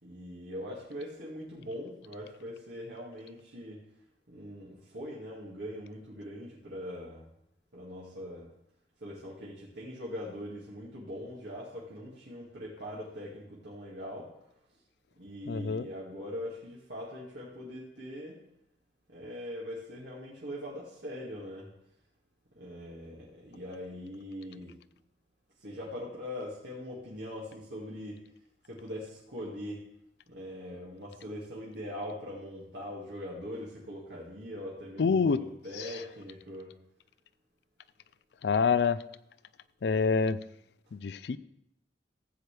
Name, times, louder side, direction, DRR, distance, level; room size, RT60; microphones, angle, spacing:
voice 1, 0.0-3.8 4.3-7.3 7.7-8.5 9.0-14.3 15.2-18.4 19.1-21.7 22.6-24.7 25.6-28.2 28.7-29.8 30.3-36.7, equal, 85° right, -5 dB, 2.1 m, -41 dB
voice 2, 15.5-15.9 35.0-35.4 38.4-39.0 39.8-40.4 40.9-41.4, left 5 dB, 70° left, 16 dB, 0.4 m, -26 dB
15.0 x 7.9 x 3.3 m, 0.78 s
head